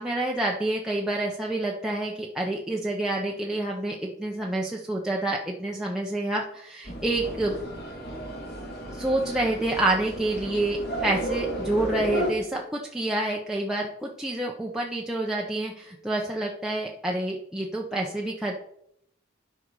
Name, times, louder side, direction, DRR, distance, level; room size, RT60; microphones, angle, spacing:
voice 1, 0.0-7.5 8.9-10.8 11.0-18.6, right 2 dB, 5° right, -2 dB, 0.9 m, -28 dB
sound 1, 6.8-12.3, right 1 dB, 50° left, 2.7 m, -33 dB
12.0 x 5.6 x 4.8 m, 0.72 s
head